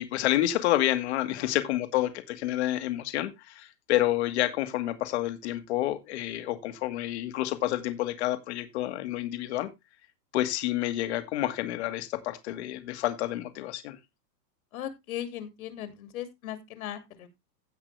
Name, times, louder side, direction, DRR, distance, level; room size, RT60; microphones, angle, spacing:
voice 1, 0.0-9.7 10.3-14.0, left 14 dB, 40° left, 1.7 m, -29 dB
voice 2, 14.7-17.3, left 11 dB, 60° left, 2.6 m, -38 dB
16.0 x 5.5 x 3.2 m
supercardioid pair, 175°, 48 cm